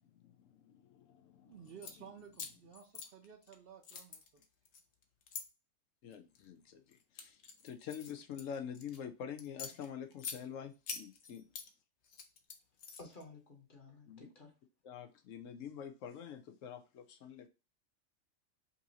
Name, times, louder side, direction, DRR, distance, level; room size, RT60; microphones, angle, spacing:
voice 1, 0.0-1.5 6.0-11.4 14.1-14.3 14.8-17.5, left 8 dB, 90° left, 1.0 m, -47 dB
voice 2, 1.4-4.4, right 8 dB, 60° right, 0.7 m, -55 dB
sound 1, 1.6-1.9 2.3-3.5 3.8-5.4 6.1-6.4 6.9-9.0 9.4-10.4 10.9-11.7 12.0-13.2, left 6 dB, 65° left, 1.0 m, -46 dB
voice 3, 13.0-14.6, left 3 dB, 40° left, 1.3 m, -54 dB
5.5 x 2.7 x 2.8 m
omnidirectional pair, 1.3 m